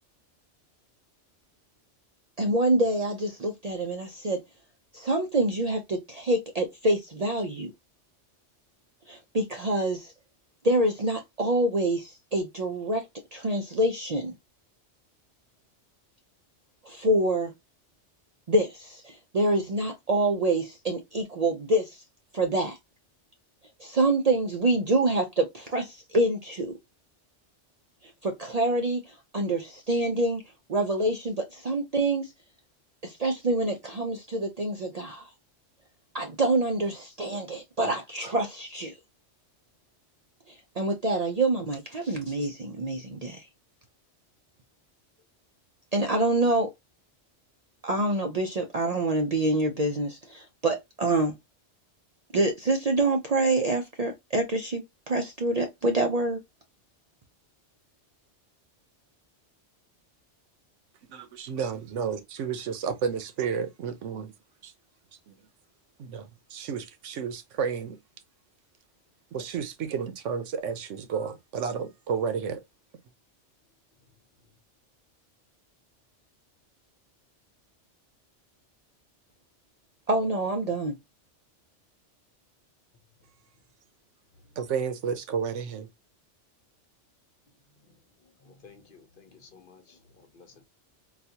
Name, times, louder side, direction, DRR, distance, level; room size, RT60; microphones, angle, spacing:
voice 1, 2.4-4.4 4.9-7.7 9.1-10.1 10.6-13.0 13.3-14.3 16.8-17.5 18.5-22.0 22.3-22.8 23.8-26.7 28.2-30.4 30.7-32.3 33.0-35.3 36.1-38.9 40.5-43.4 45.9-46.7 47.8-51.4 52.3-56.4 80.1-81.0, right 2 dB, 50° right, 0.5 m, -26 dB
voice 2, 61.1-64.3 64.6-64.7 65.3-65.4 66.0-68.0 69.3-72.6 84.6-85.9, right 6 dB, 85° right, 1.0 m, -31 dB
voice 3, 87.5-90.7, left 5 dB, 55° left, 0.8 m, -56 dB
3.9 x 2.3 x 2.7 m
omnidirectional pair, 1.2 m